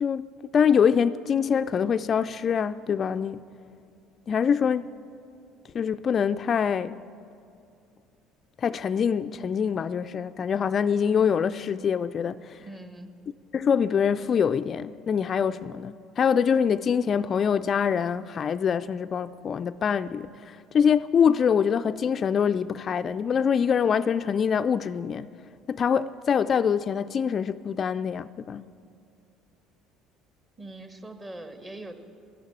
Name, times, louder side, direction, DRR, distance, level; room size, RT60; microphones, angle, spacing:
voice 1, 0.0-3.4 4.3-4.9 5.7-7.0 8.6-12.6 13.5-25.3 25.7-28.7, left 7 dB, 45° left, 0.3 m, -24 dB
voice 2, 12.6-13.1 30.6-31.9, right 2 dB, 25° right, 1.6 m, -42 dB
12.0 x 11.0 x 8.7 m
hypercardioid pair, 70°, 0 cm